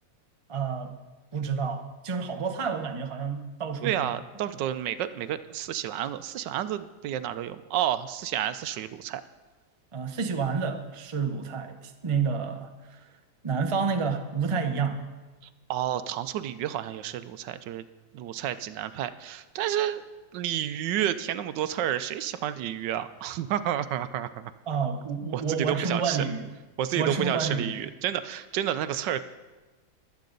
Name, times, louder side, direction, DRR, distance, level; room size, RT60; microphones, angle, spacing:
voice 1, 0.5-0.9 1.3-4.1 9.9-13.1 13.4-15.0 24.7-26.5 26.9-27.8, right 5 dB, 35° right, 6 dB, 0.5 m, -29 dB
voice 2, 3.8-9.2 15.7-17.8 18.1-20.0 20.3-24.5 25.3-26.3 26.8-29.2, right 11 dB, 80° right, 12 dB, 1.2 m, -30 dB
23.0 x 8.4 x 3.9 m, 1.2 s
omnidirectional pair, 2.0 m